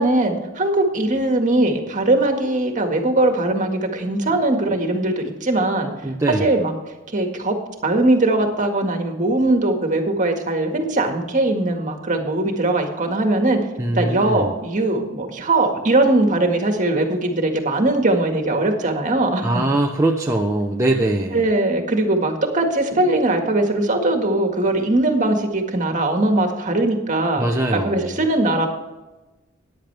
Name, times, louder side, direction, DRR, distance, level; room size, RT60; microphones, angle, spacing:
voice 1, 0.0-5.9 6.4-6.7 7.1-7.6 7.8-13.6 13.9-19.5 21.3-27.4 27.7-28.7, right 2 dB, 40° right, 4 dB, 1.8 m, -20 dB
voice 2, 6.0-6.5 13.8-14.5 19.4-21.4 27.4-28.2, right 1 dB, 15° right, 0 dB, 0.8 m, -22 dB
14.0 x 10.5 x 3.4 m, 1.1 s
head